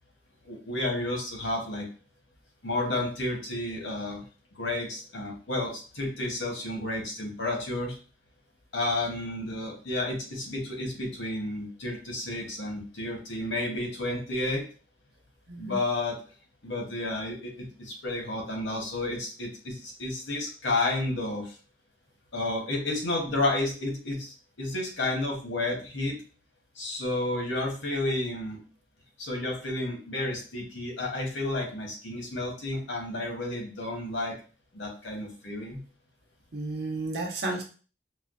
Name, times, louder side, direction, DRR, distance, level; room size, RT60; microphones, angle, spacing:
voice 1, 0.4-1.9 2.6-4.2 4.5-8.0 8.7-14.6 15.6-16.2 16.6-21.6 22.3-26.2 26.7-28.6 29.2-34.3 34.7-35.8, left 2 dB, 85° left, 1 dB, 1.0 m, -31 dB
voice 2, 15.5-15.8 36.5-37.6, right 2 dB, 60° right, 1 dB, 0.8 m, -32 dB
4.3 x 2.1 x 2.5 m, 0.38 s
head